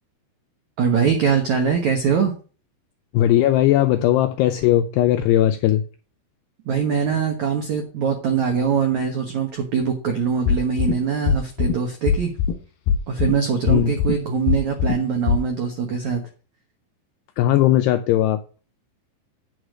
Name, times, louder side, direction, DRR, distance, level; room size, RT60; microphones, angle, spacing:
voice 1, 0.8-2.3 6.6-12.3 13.1-16.2, right 6 dB, 80° right, 1.6 m, -22 dB
voice 2, 3.1-5.8 13.7-13.9 17.4-18.4, left 13 dB, 90° left, 2.3 m, -18 dB
sound 1, 10.5-10.9 11.3-11.7 12.1-12.5 12.9-13.3 13.7-14.1 14.5-14.9 15.3-15.4, left 7 dB, 70° left, 2.4 m, -19 dB
8.8 x 6.5 x 6.2 m
omnidirectional pair, 5.4 m